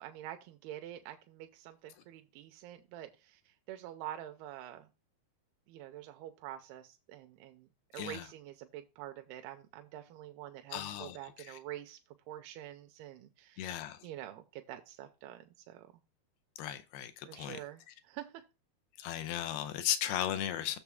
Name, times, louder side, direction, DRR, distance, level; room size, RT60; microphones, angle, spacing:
voice 1, 0.0-3.4 3.7-4.9 5.7-12.0 12.3-13.7 14.0-15.9 17.2-17.8 18.1-18.4, right 12 dB, 90° right, 2.6 m, -47 dB
voice 2, 7.9-8.3 10.7-11.6 13.6-14.0 16.6-17.6 17.9-18.0 19.0-20.8, left 11 dB, 80° left, 2.6 m, -36 dB
7.1 x 6.8 x 3.5 m
omnidirectional pair, 4.5 m